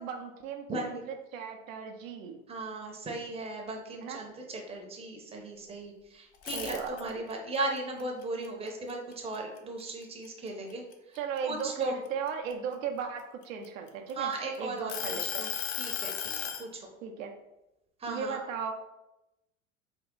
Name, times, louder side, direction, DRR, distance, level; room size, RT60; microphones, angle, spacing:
voice 1, 0.0-2.4 4.0-4.2 6.5-7.1 11.1-14.3 14.6-15.5 17.0-17.3 18.1-18.7, right 6 dB, 75° right, 3 dB, 0.6 m, -36 dB
voice 2, 0.7-1.0 2.5-11.2 11.4-12.0 14.1-15.5 15.8-16.1 16.4-16.9 18.0-18.4, right 2 dB, 15° right, 1 dB, 0.7 m, -37 dB
sound 1, 6.3-7.3 7.8-9.6 10.0-10.3 10.7-12.5 13.2-14.3 14.9-16.7, left 9 dB, 55° left, 0.6 m, -35 dB
3.5 x 2.3 x 3.7 m, 0.93 s
hypercardioid pair, 85°, 40 cm